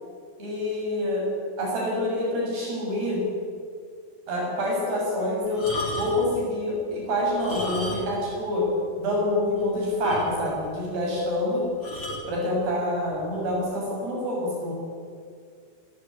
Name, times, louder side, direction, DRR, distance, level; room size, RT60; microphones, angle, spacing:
voice 1, 0.4-1.3 1.6-3.2 4.3-5.7 6.0-8.7 9.0-11.6 12.3-14.7, left 1 dB, 75° right, -3 dB, 8.8 m, -26 dB
sound 1, 5.5-6.3 7.3-8.3 8.6-8.7 9.2-9.3 9.6-9.7 10.0-10.7 11.8-12.3 13.1-13.4, left 2 dB, 30° left, 5.0 m, -34 dB
28.0 x 13.0 x 10.0 m, 2.2 s
omnidirectional pair, 4.8 m